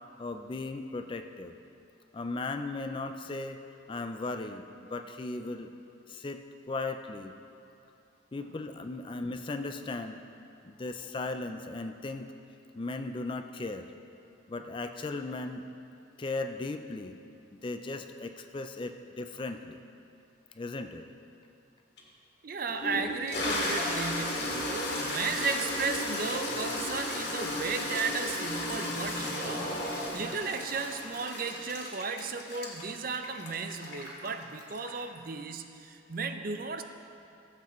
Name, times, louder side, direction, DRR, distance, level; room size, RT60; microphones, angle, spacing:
voice 1, 0.2-1.5 2.1-3.6 3.9-5.7 6.1-7.4 8.3-10.2 10.6-12.3 12.8-13.9 14.5-15.7 16.2-17.2 17.6-19.8 20.6-21.1, left 3 dB, 25° left, 7 dB, 0.4 m, -37 dB
Toilet flush, 22.0-22.1 22.7-35.2, left 1 dB, 60° left, 2.0 m, -34 dB
voice 2, 22.4-36.8, right 4 dB, 50° right, 8 dB, 0.5 m, -35 dB
16.0 x 8.0 x 3.1 m, 2.6 s
head